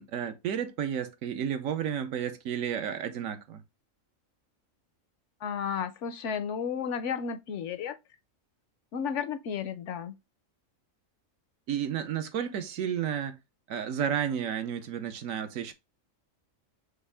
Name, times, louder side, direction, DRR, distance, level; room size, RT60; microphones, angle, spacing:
voice 1, 0.0-3.6 11.7-13.4 13.7-15.7, right 9 dB, 75° right, 1.1 m, -32 dB
voice 2, 5.4-8.0 8.9-10.2, left 7 dB, 70° left, 0.8 m, -33 dB
6.3 x 2.5 x 3.3 m
omnidirectional pair, 1.4 m